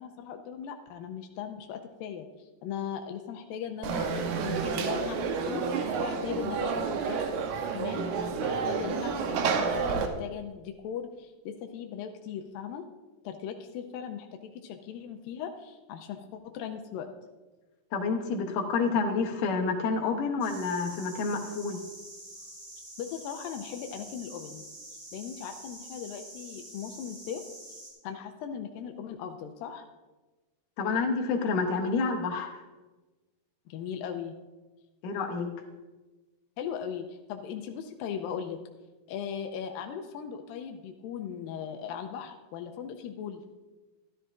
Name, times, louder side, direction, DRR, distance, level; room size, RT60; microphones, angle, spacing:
voice 1, 0.0-7.2 7.7-12.9 13.2-17.1 23.0-24.6 25.1-27.4 28.0-29.9 33.7-34.3 36.6-38.6 39.1-43.4, left 8 dB, 90° left, 5 dB, 2.4 m, -38 dB
Conversation / Crowd, 3.8-10.1, right 5 dB, 70° right, 2.0 m, -30 dB
voice 2, 17.9-21.8 30.8-32.5 35.0-35.5, left 4 dB, 70° left, 3 dB, 2.6 m, -28 dB
sound 1, 20.4-27.9, right 1 dB, 30° right, 4.0 m, -47 dB
13.5 x 13.0 x 2.5 m, 1.2 s
omnidirectional pair, 4.1 m